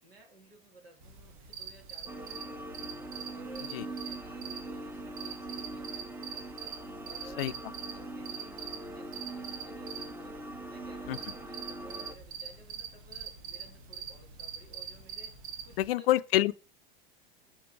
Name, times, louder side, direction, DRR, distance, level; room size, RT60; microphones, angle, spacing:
voice 1, 0.0-2.9 3.3-6.7 7.0-7.5 7.9-10.4 10.7-15.3 15.6-16.1 16.4-16.5, right 1 dB, 90° right, 2.7 m, -56 dB
sound 1, 1.0-15.9, right 7 dB, 60° right, 1.4 m, -44 dB
sound 2, 2.1-12.1, right 1 dB, 5° right, 0.7 m, -42 dB
voice 2, 15.8-16.5, left 14 dB, 75° left, 0.5 m, -26 dB
6.1 x 4.4 x 5.1 m
hypercardioid pair, 100°, 29 cm